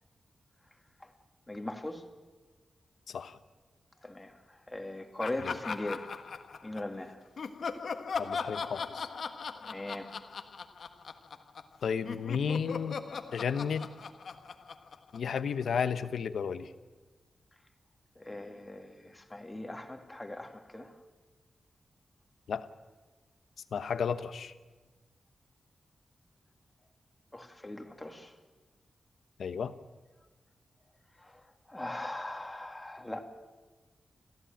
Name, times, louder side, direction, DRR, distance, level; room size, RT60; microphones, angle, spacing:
voice 1, 1.5-2.0 4.0-4.3 4.7-6.0 6.6-7.1 9.6-10.1 18.2-20.9 27.3-28.3 31.7-33.2, left 1 dB, 15° left, 5 dB, 2.3 m, -39 dB
voice 2, 3.1-3.4 5.4-5.6 8.2-9.1 11.8-13.0 13.3-13.9 15.1-16.7 22.5-22.7 23.7-24.5 29.4-29.7, left 6 dB, 90° left, 12 dB, 1.0 m, -33 dB
Laughter, 5.2-6.9 7.4-11.8 12.0-15.6, left 5 dB, 70° left, 1.5 m, -39 dB
30.0 x 14.5 x 9.1 m, 1.3 s
wide cardioid pair, 115°, 0 cm